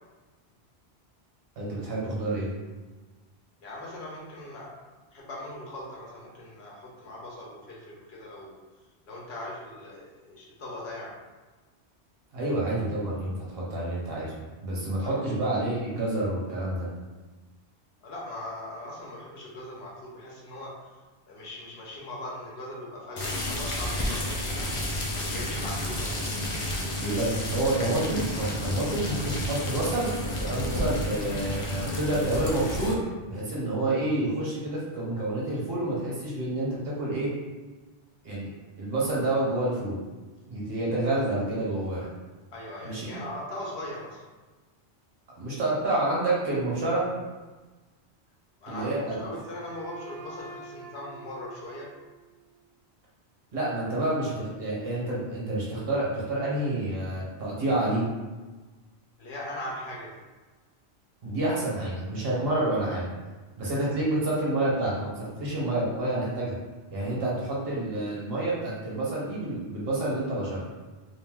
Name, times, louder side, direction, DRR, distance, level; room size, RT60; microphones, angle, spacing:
voice 1, 1.6-2.5 12.3-14.3 14.6-16.9 27.0-37.3 38.2-38.5 38.8-40.0 40.5-42.1 42.8-43.2 45.4-47.1 48.7-49.1 53.5-58.0 61.2-63.1 63.6-66.5 66.9-70.6, right 2 dB, 65° right, -5 dB, 1.1 m, -28 dB
voice 2, 3.6-4.7 5.1-8.6 9.1-11.1 15.0-15.1 18.0-20.9 21.3-24.7 25.1-26.3 42.5-44.2 48.6-51.9 59.2-60.2, left 1 dB, 70° left, -4 dB, 1.0 m, -40 dB
sound 1, 23.2-32.9, left 1 dB, 50° left, 0.4 m, -31 dB
Wind instrument woodwind instrument, 48.7-52.6, right 2 dB, 90° right, 0.9 m, -47 dB
2.6 x 2.1 x 3.3 m, 1.3 s
omnidirectional pair, 1.1 m